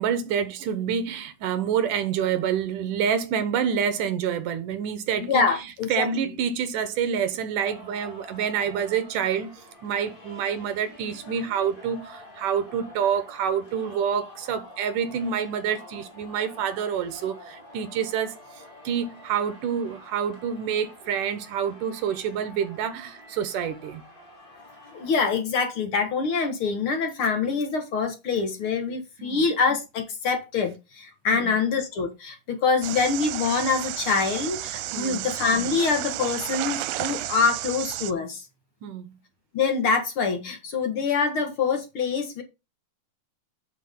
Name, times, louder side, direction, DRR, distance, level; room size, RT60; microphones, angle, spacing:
voice 1, 0.0-5.5 5.9-9.5 9.8-24.0 29.2-29.4 31.3-31.5 34.9-35.2 38.8-39.1, right 7 dB, 70° right, 2.5 m, -27 dB
voice 2, 5.2-6.1 24.9-38.4 39.5-42.4, left 5 dB, 45° left, 1.9 m, -25 dB
Singing, 7.6-25.1, left 1 dB, 15° left, 2.5 m, -47 dB
sound 1, 32.8-38.1, right 16 dB, 90° right, 2.4 m, -32 dB
9.1 x 6.6 x 3.8 m
omnidirectional pair, 4.1 m